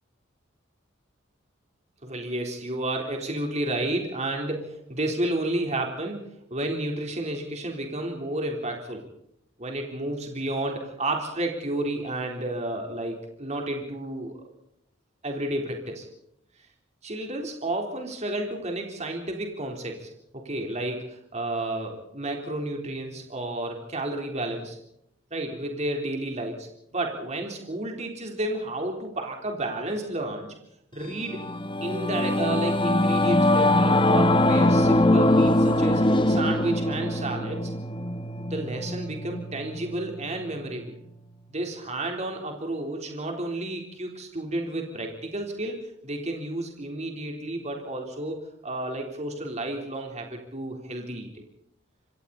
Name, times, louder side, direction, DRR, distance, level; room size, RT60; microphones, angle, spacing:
voice 1, 2.0-9.0 9.6-14.5 15.2-16.1 17.0-24.8 25.3-30.5 30.9-31.4 31.8-37.7 38.5-41.0 41.5-51.4, right 1 dB, 35° right, 2 dB, 3.8 m, -31 dB
Singing / Musical instrument, 31.1-40.8, left 1 dB, 25° left, 1.1 m, -23 dB
27.0 x 24.5 x 4.2 m, 0.75 s
head